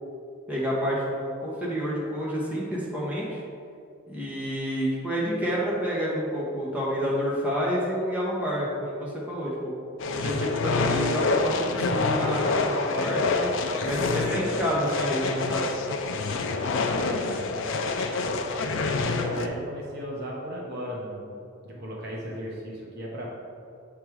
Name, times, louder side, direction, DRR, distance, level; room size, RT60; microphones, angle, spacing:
voice 1, 0.5-3.4 4.1-13.5 13.8-15.7, equal, 5° right, -7 dB, 1.3 m, -29 dB
sound 1, 10.0-19.5, left 3 dB, 60° left, 0.5 m, -27 dB
voice 2, 17.1-17.9 18.5-21.3 21.6-23.3, equal, 50° right, -4 dB, 1.2 m, -37 dB
7.7 x 3.7 x 4.7 m, 2.5 s
head